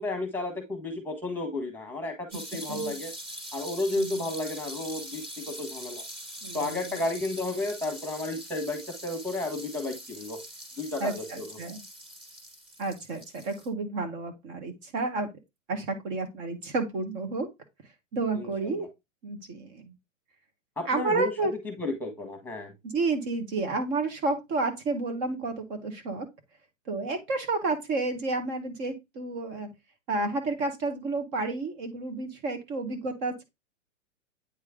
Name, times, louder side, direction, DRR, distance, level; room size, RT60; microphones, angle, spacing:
voice 1, 0.0-3.1 3.5-6.0 6.5-10.4 10.8-11.6 18.3-18.9 20.8-21.3 21.8-22.7, left 2 dB, 5° left, 5 dB, 1.6 m, -32 dB
sound 1, 2.3-13.7, equal, 15° right, 2.1 m, -43 dB
voice 2, 6.4-6.8 11.0-11.8 12.8-15.3 15.7-17.5 18.1-18.9 19.2-19.9 20.8-21.5 22.8-26.3 26.9-29.7 30.1-33.4, right 3 dB, 40° right, 6 dB, 1.4 m, -31 dB
9.0 x 3.1 x 3.7 m, 0.21 s
hypercardioid pair, 130°, 38 cm